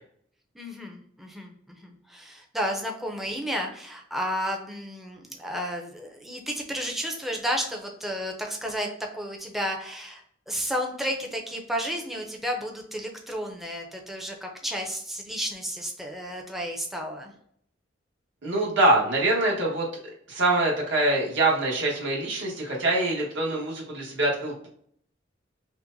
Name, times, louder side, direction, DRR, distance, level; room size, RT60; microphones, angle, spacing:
voice 1, 0.5-17.3, equal, ahead, 1 dB, 0.5 m, -32 dB
voice 2, 18.4-19.9 20.3-24.7, right 2 dB, 70° right, -3 dB, 1.3 m, -24 dB
5.7 x 2.1 x 2.6 m, 0.66 s
head